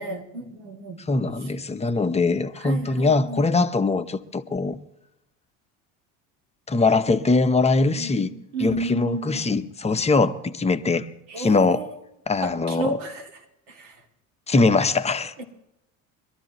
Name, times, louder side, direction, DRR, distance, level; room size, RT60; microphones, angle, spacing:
voice 1, 0.0-1.0 2.6-3.4 7.9-9.5 11.3-11.9 12.4-13.3 13.7-13.9 15.4-15.5, right 1 dB, 70° right, 2.5 m, -32 dB
voice 2, 1.1-4.8 6.7-8.3 8.6-11.1 11.4-11.9 12.3-13.0 14.5-15.3, left 3 dB, 15° left, 0.8 m, -22 dB
22.0 x 13.0 x 3.0 m
hypercardioid pair, 75°, 41 cm